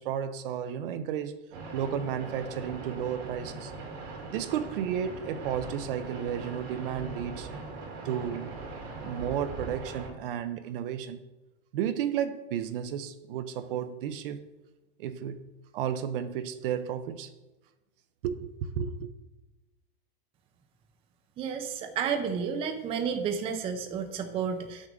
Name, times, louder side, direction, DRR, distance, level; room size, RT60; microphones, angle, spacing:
voice 1, 0.0-1.4 1.7-3.7 4.3-7.5 8.0-8.5 9.0-11.2 11.7-14.4 15.0-15.4 15.7-17.3 18.2-18.5 18.8-19.1, right 9 dB, 60° right, 0.6 m, -33 dB
sound 1, 1.5-10.1, right 3 dB, 85° right, 2.5 m, -40 dB
voice 2, 21.4-24.9, right 6 dB, 20° right, 0.5 m, -31 dB
7.4 x 6.3 x 3.7 m
supercardioid pair, 150°, 31 cm